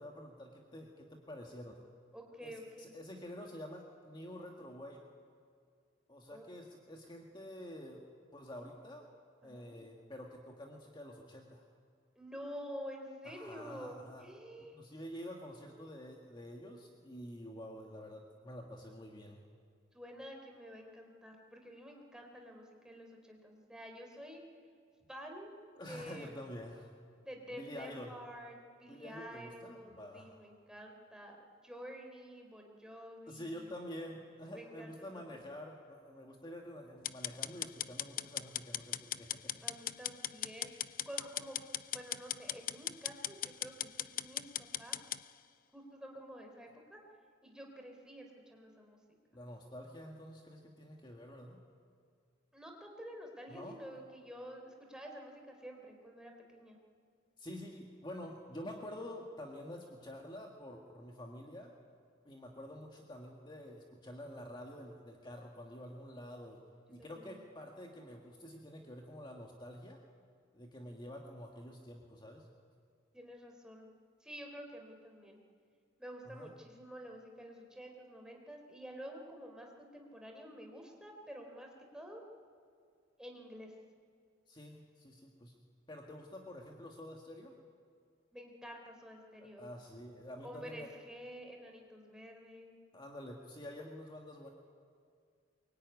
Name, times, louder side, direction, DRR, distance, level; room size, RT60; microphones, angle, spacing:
voice 1, 0.0-1.8 2.4-5.0 6.1-8.0 8.3-9.1 9.4-11.6 13.2-14.3 14.6-19.4 25.8-27.0 27.5-28.2 28.9-30.5 33.3-39.6 49.3-51.6 53.5-53.8 57.4-61.7 62.3-66.6 66.9-70.0 70.5-72.5 76.3-76.6 84.5-85.5 85.9-87.5 89.4-90.9 92.9-94.5, left 1 dB, 25° left, 1 dB, 1.8 m, -48 dB
voice 2, 2.1-2.9 6.3-6.5 9.4-9.8 12.1-14.8 19.9-24.4 25.1-25.5 25.9-26.3 27.2-33.7 34.5-35.4 39.6-41.6 41.9-45.0 45.7-47.0 47.4-49.0 52.5-56.8 67.0-67.4 73.1-73.9 74.2-75.4 76.0-82.2 83.2-83.7 88.3-89.7 90.4-92.8, equal, 5° right, 2 dB, 3.4 m, -49 dB
sound 1, 37.0-45.2, left 11 dB, 45° left, 0.6 m, -39 dB
23.0 x 22.5 x 9.6 m, 2.2 s
head